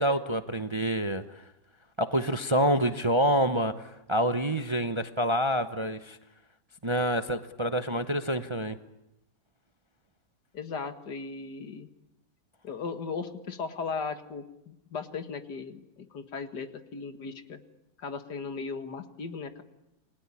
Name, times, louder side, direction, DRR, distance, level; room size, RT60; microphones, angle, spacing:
voice 1, 0.0-1.4 2.0-6.2 6.8-8.8, equal, 25° right, 10 dB, 0.8 m, -27 dB
voice 2, 10.5-11.9 12.6-17.6 18.0-19.6, left 5 dB, 75° left, 9 dB, 2.3 m, -37 dB
28.5 x 21.0 x 9.9 m, 0.89 s
omnidirectional pair, 1.8 m